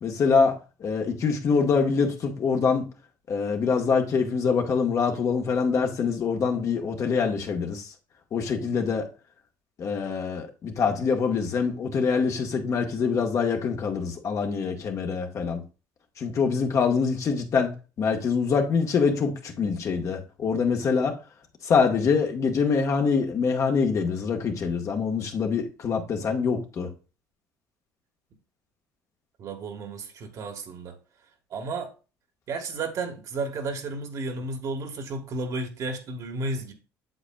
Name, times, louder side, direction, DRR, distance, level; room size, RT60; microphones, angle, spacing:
voice 1, 0.0-2.9 3.3-7.9 8.3-9.0 9.8-15.6 16.2-21.2 21.6-26.9, left 5 dB, 45° left, 1.4 m, -25 dB
voice 2, 29.4-30.9 31.5-31.9 32.5-36.7, right 3 dB, 55° right, 1.5 m, -32 dB
8.0 x 7.3 x 2.3 m
supercardioid pair, 95°, 7 cm